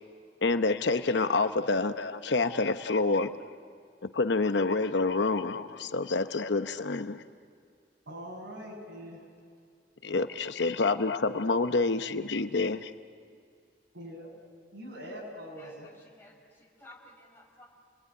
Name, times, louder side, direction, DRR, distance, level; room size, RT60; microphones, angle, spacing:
voice 1, 0.4-3.4 4.0-7.2 10.0-12.9, left 3 dB, 70° left, 9 dB, 0.9 m, -27 dB
voice 2, 8.1-9.3 13.9-14.3 14.7-15.9, equal, 80° right, -1 dB, 7.4 m, -43 dB
voice 3, 15.6-17.7, left 1 dB, 15° left, -1 dB, 5.3 m, -54 dB
29.0 x 20.5 x 9.7 m, 2.2 s
head